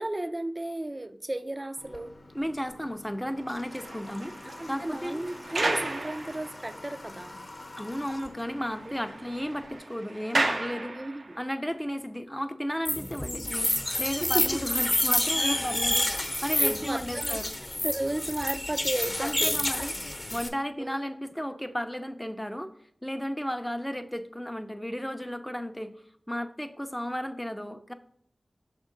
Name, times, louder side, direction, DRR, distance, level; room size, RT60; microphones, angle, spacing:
voice 1, 0.0-2.1 4.5-7.4 10.9-11.4 13.9-14.5 15.3-15.6 16.6-17.4 17.8-19.6 20.8-21.0, right 1 dB, 35° right, 10 dB, 0.5 m, -34 dB
Water / Water tap faucet, 1.8-9.8, left 2 dB, 65° left, 0.8 m, -47 dB
voice 2, 2.3-4.3 4.7-5.2 7.8-10.9 11.4-13.7 14.0-17.5 19.2-19.9 20.3-22.7 23.0-25.9 26.3-27.9, equal, 5° left, 8 dB, 0.6 m, -34 dB
sound 1, 3.4-6.9 7.4-7.5 7.9-8.0 8.3-11.5, right 2 dB, 75° right, 0.7 m, -34 dB
sound 2, 12.8-20.5, left 1 dB, 30° left, 0.9 m, -28 dB
6.3 x 3.6 x 5.2 m, 0.67 s
cardioid pair, 40°, 0 cm